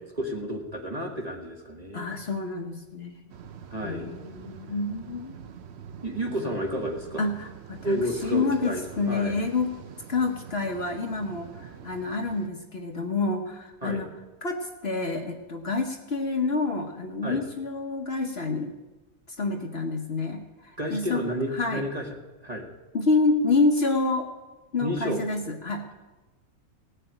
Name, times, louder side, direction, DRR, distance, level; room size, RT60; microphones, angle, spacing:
voice 1, 0.2-2.1 3.7-4.1 6.0-7.2 7.8-9.5 13.8-14.0 17.2-17.4 20.8-22.0 22.4-22.7 24.8-25.2, equal, 25° right, 2 dB, 1.7 m, -31 dB
voice 2, 1.9-3.2 3.8-5.3 7.2-9.7 10.1-14.1 14.4-18.7 19.3-21.2 21.5-21.8 22.9-24.3 24.7-25.9, left 3 dB, 45° left, 4 dB, 1.2 m, -28 dB
sound 1, 3.3-12.5, right 7 dB, 55° right, 0.9 m, -45 dB
17.5 x 6.7 x 8.9 m, 1.2 s
omnidirectional pair, 1.5 m